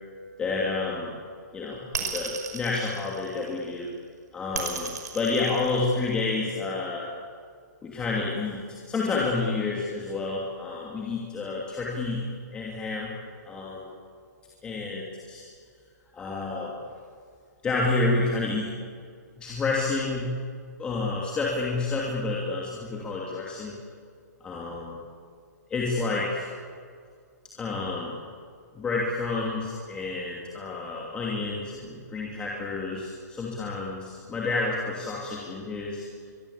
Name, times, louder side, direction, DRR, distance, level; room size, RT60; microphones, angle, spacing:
voice 1, 0.4-1.1 1.5-3.9 4.3-7.1 7.8-8.6 8.9-12.2 12.5-13.1 13.4-13.9 14.6-15.4 16.1-16.8 17.6-18.7 19.4-20.3 20.8-23.7 24.4-25.0 25.7-26.5 27.6-28.1 28.7-36.0, left 3 dB, 10° left, -4 dB, 2.7 m, -29 dB
sound 1, 1.9-3.7 4.5-6.3, right 6 dB, 70° right, 5.4 m, -34 dB
24.0 x 22.5 x 8.5 m, 2.1 s
hypercardioid pair, 165°, 9 cm